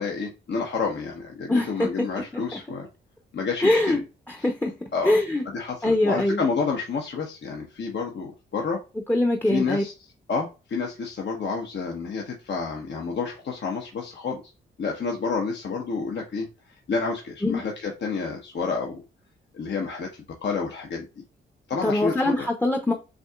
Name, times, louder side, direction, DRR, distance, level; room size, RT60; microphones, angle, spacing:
voice 1, 0.0-2.9 3.3-4.0 4.9-5.2 5.4-8.8 9.5-9.9 10.3-14.4 14.8-19.0 19.5-21.2 21.7-22.5, left 4 dB, 60° left, 1 dB, 1.0 m, -29 dB
voice 2, 1.5-2.1 2.3-2.4 3.6-4.0 4.3-4.7 5.0-5.4 5.8-6.4 9.1-9.8 17.4-17.6 21.8-22.9, left 1 dB, 10° left, 2 dB, 0.7 m, -23 dB
6.1 x 2.8 x 2.3 m, 0.30 s
cardioid pair, 75°, 21 cm